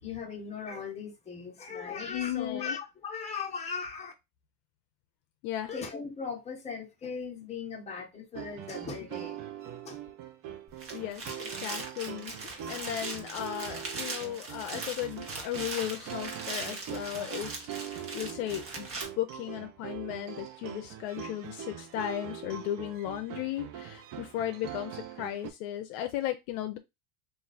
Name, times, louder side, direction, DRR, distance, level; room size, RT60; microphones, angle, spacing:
voice 1, 0.0-4.1 5.7-9.4 9.8-10.0, left 5 dB, 15° left, 1.1 m, -38 dB
voice 2, 2.0-2.8 5.4-5.7 10.9-18.9 19.1-26.8, left 12 dB, 65° left, 0.6 m, -36 dB
sound 1, 8.3-25.5, right 10 dB, 45° right, 0.7 m, -43 dB
sound 2, 10.7-19.0, right 3 dB, 30° right, 1.1 m, -40 dB
3.1 x 2.6 x 4.0 m
supercardioid pair, 115°, 45 cm